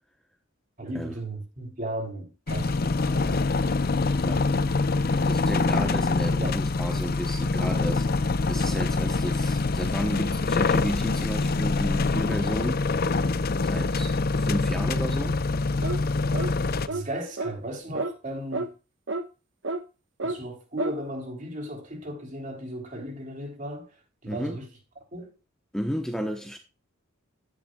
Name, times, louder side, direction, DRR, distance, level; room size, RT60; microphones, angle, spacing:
voice 1, 0.8-3.5 6.3-6.6 16.2-16.4 16.9-18.7 20.2-24.7 25.1-25.3, right 1 dB, 40° right, 3.7 m, -36 dB
sound 1, 2.5-16.9, left 3 dB, 45° left, 0.6 m, -25 dB
voice 2, 5.1-12.9 13.6-15.4 24.3-24.6 25.7-26.6, equal, 5° left, 1.0 m, -33 dB
sound 2, 15.8-16.0 16.3-16.5 16.9-17.1 17.4-17.5 17.9-18.1 18.5-18.7 19.1-19.2 19.6-19.8 20.2-20.4 20.8-21.0, right 2 dB, 60° right, 1.2 m, -30 dB
11.5 x 10.5 x 2.4 m
head